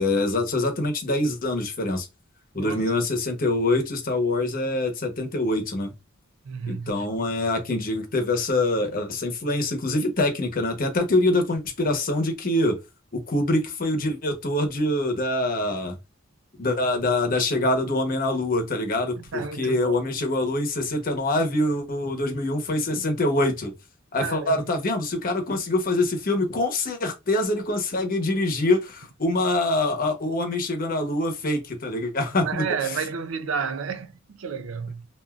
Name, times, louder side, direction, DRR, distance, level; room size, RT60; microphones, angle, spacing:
voice 1, 0.0-2.1 2.5-5.9 6.7-12.7 13.1-15.9 16.6-23.7 24.1-32.6, left 2 dB, 45° left, 0.9 m, -25 dB
voice 2, 2.5-2.9 6.4-7.1 19.2-20.0 24.2-24.6 32.4-35.1, right 6 dB, 85° right, 0.5 m, -31 dB
3.4 x 2.5 x 2.3 m
head